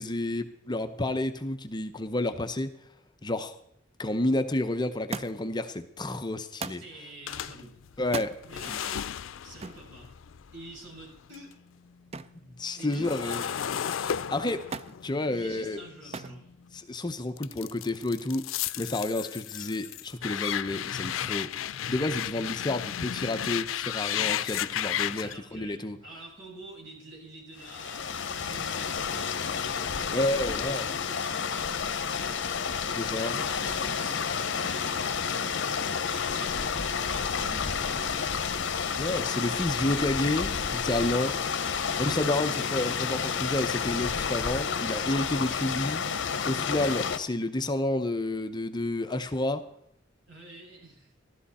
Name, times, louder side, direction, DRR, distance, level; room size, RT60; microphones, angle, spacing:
voice 1, 0.0-2.8 3.2-3.6 4.0-6.8 8.0-8.3 12.4-13.4 14.0-14.6 15.0-15.8 16.9-18.5 18.7-21.5 21.9-26.0 28.6-28.7 30.1-30.9 32.9-33.4 39.0-41.3 42.0-46.0 46.4-49.6, left 1 dB, 25° left, 9 dB, 0.7 m, -30 dB
Thump thud, 5.1-5.6 6.6-6.9 8.0-8.4 9.6-9.9 12.1-12.4 12.8-13.4 14.7-15.0 16.1-16.4 17.3-17.8 18.8-18.9, right 4 dB, 35° right, 0.5 m, -37 dB
voice 2, 6.7-8.0 8.4-9.1 9.4-10.1 10.5-11.5 12.7-13.9 15.3-16.5 25.2-30.6 30.9-32.4 33.2-38.2 41.0-43.0 50.3-51.1, right 1 dB, 70° right, -2 dB, 6.1 m, -47 dB
sound 1, 7.3-11.5 11.9-16.8 17.4-25.4, left 10 dB, 90° left, 0.4 m, -34 dB
sound 2, 27.6-47.2, left 6 dB, 65° left, 0.8 m, -30 dB
13.5 x 13.0 x 4.2 m, 0.74 s
head